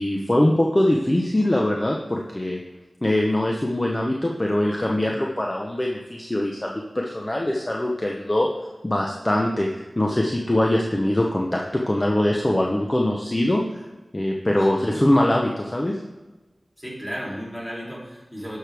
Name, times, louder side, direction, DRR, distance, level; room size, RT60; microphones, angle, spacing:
voice 1, 0.0-2.6 3.0-8.5 8.8-13.8 14.1-16.0, left 1 dB, 25° left, -1 dB, 0.8 m, -22 dB
voice 2, 14.7-15.0 16.8-18.6, equal, 5° left, -5 dB, 3.1 m, -34 dB
10.5 x 6.5 x 3.4 m, 1.1 s
wide cardioid pair, 65°, 0 cm